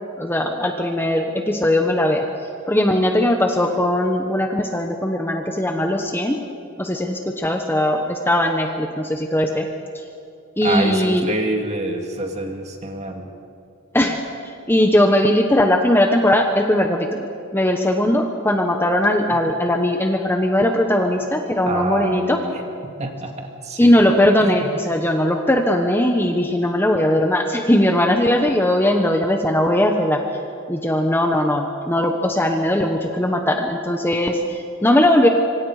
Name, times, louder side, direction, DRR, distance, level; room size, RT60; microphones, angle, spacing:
voice 1, 0.2-2.2 2.7-6.4 6.8-9.7 10.6-11.3 13.9-14.2 14.7-22.4 23.8-30.2 30.7-35.3, left 1 dB, 10° left, 4 dB, 1.1 m, -19 dB
voice 2, 10.6-13.3 21.7-22.6 23.0-23.9 24.4-24.7, right 2 dB, 30° right, 3 dB, 2.3 m, -27 dB
26.0 x 25.0 x 5.0 m, 2.4 s
head